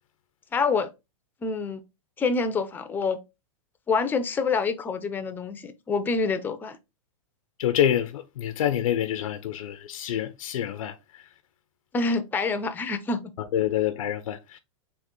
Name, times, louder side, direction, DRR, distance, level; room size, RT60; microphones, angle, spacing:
voice 1, 0.5-0.9 1.4-1.8 2.2-3.2 3.9-6.8 11.9-13.3, left 4 dB, 10° left, 0.4 m, -26 dB
voice 2, 7.6-10.9 13.5-14.6, left 10 dB, 80° left, 0.5 m, -26 dB
3.7 x 2.4 x 3.6 m
hypercardioid pair, 135°, 17 cm